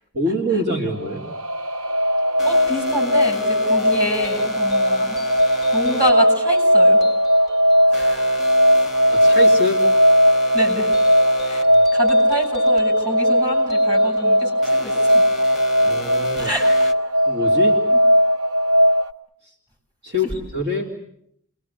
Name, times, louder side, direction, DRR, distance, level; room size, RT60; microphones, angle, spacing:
voice 1, 0.1-1.2 9.1-9.8 11.7-11.8 15.8-16.5 17.3-17.8 20.0-20.9, left 1 dB, 50° right, -1 dB, 3.4 m, -25 dB
sound 1, 1.0-19.1, equal, 85° right, 1.2 m, -18 dB
sound 2, 2.4-16.9, left 1 dB, ahead, 1.5 m, -36 dB
voice 2, 2.4-5.2 5.7-7.0 7.9-8.2 10.5-10.9 11.5-11.7 11.9-15.2 16.4-16.9 17.9-18.0, equal, 20° right, 2 dB, 6.5 m, -27 dB
30.0 x 21.5 x 8.3 m, 0.71 s
head